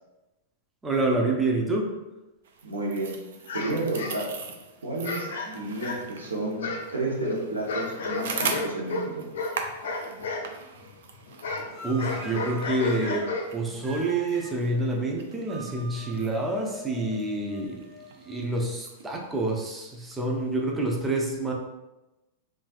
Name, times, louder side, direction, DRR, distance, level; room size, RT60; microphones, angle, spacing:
voice 1, 0.8-1.9 11.8-17.9 18.2-21.5, right 2 dB, 15° right, 0 dB, 0.5 m, -27 dB
sound 1, 2.4-20.7, right 5 dB, 65° right, 0.4 m, -41 dB
voice 2, 2.6-3.2 3.5-4.3 4.8-9.3, right 2 dB, 85° right, -2 dB, 0.7 m, -31 dB
sound 2, 3.4-4.5 5.0-6.2 6.6-10.5 10.7-13.8, left 3 dB, 70° left, 0.5 m, -33 dB
sound 3, 11.7-13.3 13.8-14.5 15.5-18.7, right 1 dB, 35° right, 1.1 m, -44 dB
3.2 x 2.3 x 2.5 m, 1.0 s
hypercardioid pair, 100°, 0 cm